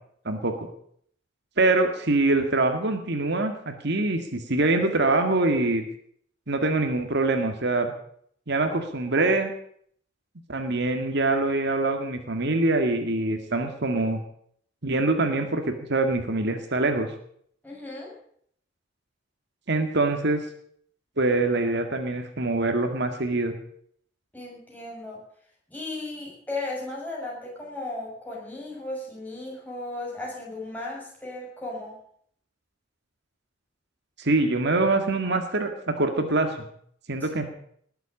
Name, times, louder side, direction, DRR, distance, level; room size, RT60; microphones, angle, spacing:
voice 1, 0.3-0.7 1.6-5.8 6.5-7.9 8.5-9.5 10.5-14.2 14.8-17.1 19.7-20.4 21.2-23.6 34.2-35.7 36.0-36.6 37.1-37.4, right 2 dB, 60° right, 6 dB, 2.0 m, -24 dB
voice 2, 17.6-18.2 24.3-25.2 25.7-32.0 37.2-37.3, left 2 dB, 10° left, -4 dB, 6.9 m, -36 dB
19.5 x 8.1 x 8.5 m, 0.65 s
head